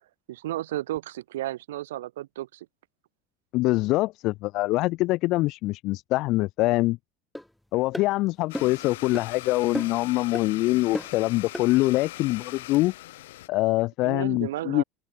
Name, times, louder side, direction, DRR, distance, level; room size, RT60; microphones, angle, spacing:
voice 1, 0.3-2.7 14.0-14.8, right 14 dB, 85° right, 1.2 m, -33 dB
voice 2, 3.5-7.0 7.7-12.9 13.5-14.8, left 19 dB, 65° left, 0.4 m, -24 dB
sound 1, 7.3-7.5 7.9-8.1 8.5-8.8 9.1-9.3 9.7-10.1 10.3-10.5 10.9-11.2 11.5-11.7, left 1 dB, 5° left, 1.8 m, -33 dB
Domestic sounds home sounds, 8.5-13.5, left 17 dB, 80° left, 6.0 m, -41 dB
open air
hypercardioid pair, 75°, 0 cm